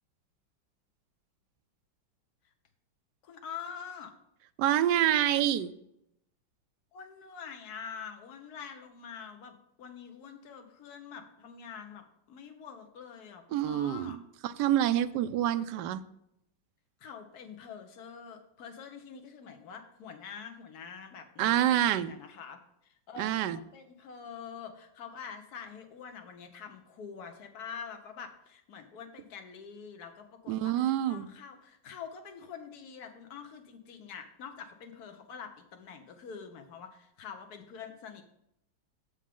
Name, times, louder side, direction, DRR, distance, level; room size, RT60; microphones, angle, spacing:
voice 1, 3.2-4.1 6.9-14.2 17.0-38.2, left 6 dB, 55° left, 6 dB, 1.5 m, -46 dB
voice 2, 4.6-5.7 13.5-16.0 21.4-22.1 23.2-23.6 30.5-31.3, right 12 dB, 75° right, 11 dB, 1.0 m, -27 dB
8.5 x 7.3 x 3.6 m, 0.78 s
omnidirectional pair, 2.2 m